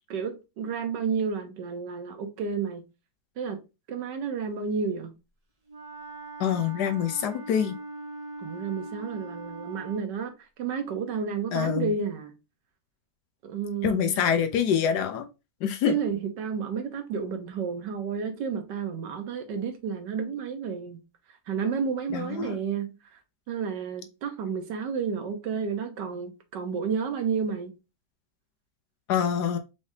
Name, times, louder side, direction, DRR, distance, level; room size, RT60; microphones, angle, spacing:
voice 1, 0.1-2.8 3.4-3.6 3.9-5.1 8.4-12.3 13.4-14.3 15.9-21.0 21.5-23.2 23.5-27.7, right 6 dB, 85° right, 1.6 m, -31 dB
Wind instrument woodwind instrument, 5.7-10.1, right 2 dB, 65° right, 0.3 m, -41 dB
voice 2, 6.4-7.8 11.5-11.9 13.8-15.3 15.6-16.0 22.1-22.6 29.1-29.6, left 8 dB, 75° left, 1.2 m, -25 dB
4.9 x 3.4 x 2.7 m
omnidirectional pair, 1.9 m